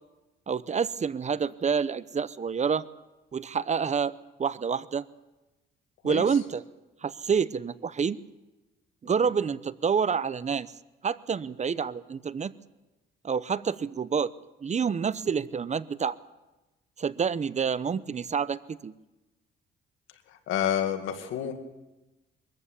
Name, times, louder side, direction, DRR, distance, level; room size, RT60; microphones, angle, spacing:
voice 1, 0.5-2.8 3.3-4.1 4.4-5.1 6.0-6.6 7.0-8.2 9.0-10.7 11.0-12.5 13.2-14.3 14.6-16.2 17.0-18.9, right 6 dB, 35° right, 17 dB, 0.8 m, -28 dB
voice 2, 20.5-21.5, left 10 dB, 90° left, 6 dB, 2.2 m, -28 dB
22.5 x 14.5 x 8.4 m, 1.1 s
cardioid pair, 90°, 20 cm